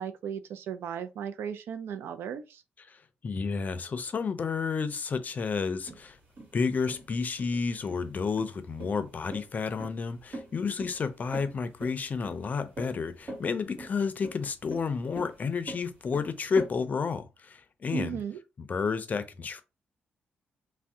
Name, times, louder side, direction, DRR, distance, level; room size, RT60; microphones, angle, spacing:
voice 1, 0.0-2.6 17.9-18.4, right 8 dB, 85° right, 0.4 m, -36 dB
voice 2, 2.9-6.2 6.5-18.2 18.7-19.6, left 5 dB, 45° left, 0.5 m, -31 dB
sound 1, 5.9-16.7, right 1 dB, 55° right, 1.5 m, -43 dB
2.6 x 2.1 x 3.5 m
cardioid pair, 90°, 4 cm